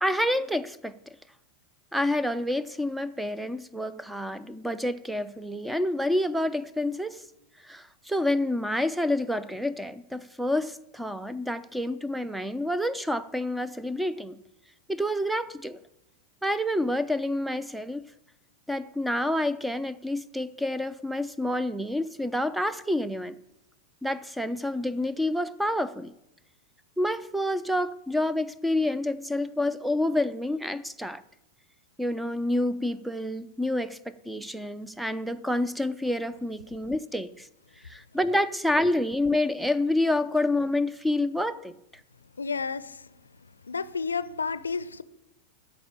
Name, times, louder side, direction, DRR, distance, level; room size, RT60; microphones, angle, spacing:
voice 1, 0.0-0.9 1.9-7.2 7.7-14.4 14.9-15.8 16.4-18.0 18.7-23.4 24.0-26.1 27.0-31.2 32.0-37.5 37.9-41.7, left 1 dB, ahead, 0.5 m, -28 dB
voice 2, 42.4-43.1 43.6-45.0, left 5 dB, 75° left, 0.5 m, -31 dB
13.0 x 5.4 x 8.7 m
figure-of-eight pair, 90°, 0 cm